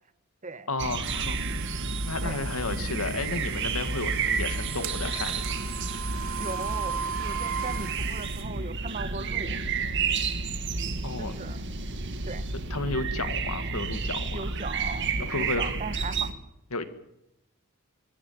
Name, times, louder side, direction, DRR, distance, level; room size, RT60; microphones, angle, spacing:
voice 1, 0.7-1.4 2.0-5.6 11.0-11.4 12.5-14.4 15.2-15.7 16.7-16.9, left 3 dB, 85° left, 2.1 m, -32 dB
sound 1, 0.8-16.3, right 4 dB, 55° right, 1.7 m, -31 dB
sound 2, 1.0-8.4, right 7 dB, 75° right, 2.5 m, -37 dB
voice 2, 6.4-9.6 11.2-11.6 12.3-12.4 14.3-16.3, right 3 dB, 35° right, 1.1 m, -38 dB
24.0 x 13.5 x 9.3 m
head